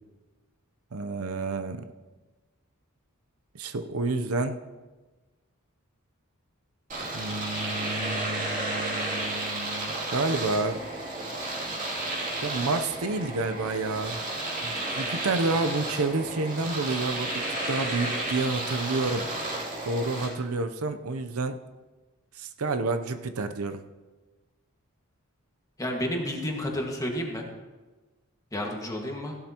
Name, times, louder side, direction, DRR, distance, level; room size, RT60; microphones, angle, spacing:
voice 1, 0.9-1.8 3.5-4.6 7.1-10.8 12.4-14.2 14.6-19.3 19.8-21.6 22.3-23.8, right 3 dB, 80° right, 8 dB, 0.7 m, -29 dB
Domestic sounds home sounds, 6.9-20.3, right 2 dB, 35° right, 2.7 m, -32 dB
voice 2, 25.8-27.4 28.5-29.3, equal, 15° left, 0 dB, 1.7 m, -31 dB
16.0 x 12.0 x 3.0 m, 1.2 s
head